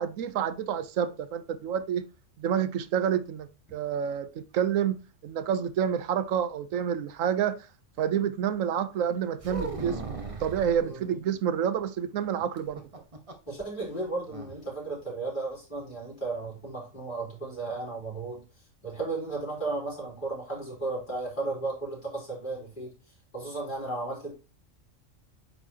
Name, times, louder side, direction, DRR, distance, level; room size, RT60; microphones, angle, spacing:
voice 1, 0.0-2.0 2.4-5.0 5.2-7.6 8.0-12.8, right 8 dB, 80° right, 1.1 m, -28 dB
sound 1, 9.4-10.8 12.6-13.5 13.8-13.9 14.3-14.6, right 3 dB, 30° right, 0.9 m, -37 dB
voice 2, 10.8-11.2 13.5-18.4 18.8-22.9 23.3-24.4, right 3 dB, 35° left, 4.0 m, -34 dB
9.0 x 4.3 x 2.8 m
omnidirectional pair, 1.4 m